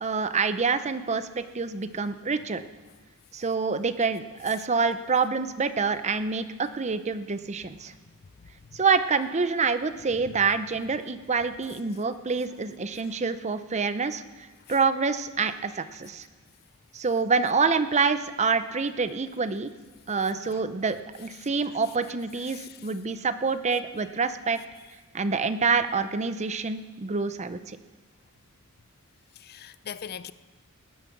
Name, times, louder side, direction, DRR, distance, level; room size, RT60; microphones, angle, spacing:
voice 1, 0.0-2.6 3.3-7.9 8.7-14.2 14.7-16.3 16.9-19.7 20.1-24.6 25.1-27.8, right 4 dB, 30° right, 0.6 m, -27 dB
voice 2, 29.4-30.3, left 8 dB, 45° left, 0.5 m, -41 dB
18.5 x 10.0 x 6.0 m
head